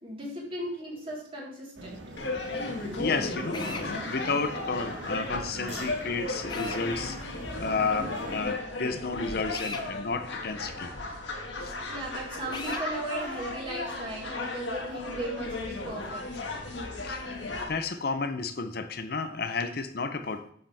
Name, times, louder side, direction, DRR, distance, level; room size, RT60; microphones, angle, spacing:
voice 1, 0.0-2.0 11.9-16.2, right 1 dB, 30° right, -5 dB, 4.0 m, -36 dB
sound 1, 1.8-8.4, right 1 dB, 80° right, 1.9 m, -42 dB
sound 2, 2.2-17.7, left 2 dB, 75° left, 1.9 m, -35 dB
voice 2, 3.0-10.9 11.6-11.8 17.0-20.5, left 4 dB, 55° left, 9 dB, 0.6 m, -32 dB
Drill, 3.5-3.9 6.5-6.8 9.5-9.9 12.5-12.9, left 3 dB, 25° left, 0.9 m, -37 dB
10.5 x 7.8 x 3.5 m, 0.67 s
head